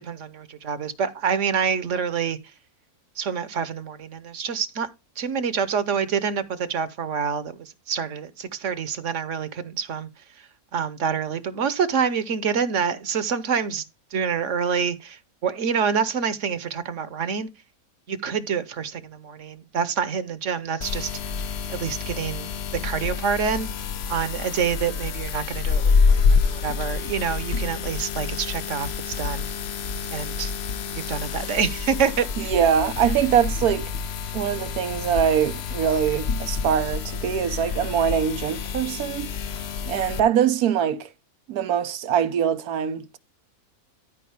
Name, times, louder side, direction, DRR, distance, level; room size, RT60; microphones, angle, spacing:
voice 1, 0.0-2.4 3.2-4.9 5.2-10.1 10.7-13.8 14.1-17.5 18.1-21.2 21.7-22.5 22.8-23.7 24.1-29.5 30.1-30.5 30.9-32.5, right 6 dB, 60° right, 1.2 m, -27 dB
sound 1, 20.8-40.2, left 5 dB, 55° left, 0.8 m, -27 dB
voice 2, 32.4-33.9 34.3-39.3 39.9-41.1 41.5-43.2, right 8 dB, 90° right, 1.3 m, -23 dB
13.5 x 4.9 x 3.5 m
omnidirectional pair, 1.5 m